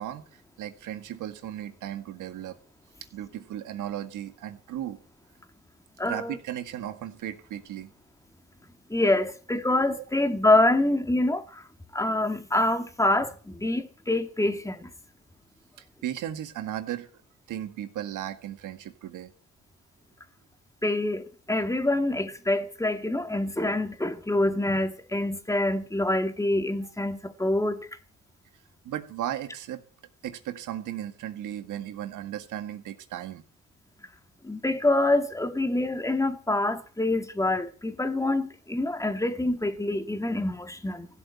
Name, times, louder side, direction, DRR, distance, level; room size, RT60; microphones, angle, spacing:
voice 1, 0.0-2.6 3.1-5.0 6.0-7.9 10.0-10.1 15.8-17.2 17.5-19.3 28.8-29.8 30.2-33.4, right 11 dB, 80° right, 1.8 m, -36 dB
voice 2, 6.0-6.4 8.9-11.6 11.9-14.9 20.8-27.9 34.4-41.1, left 2 dB, 10° left, 2.0 m, -26 dB
16.0 x 7.6 x 8.6 m
cardioid pair, 90°, 30 cm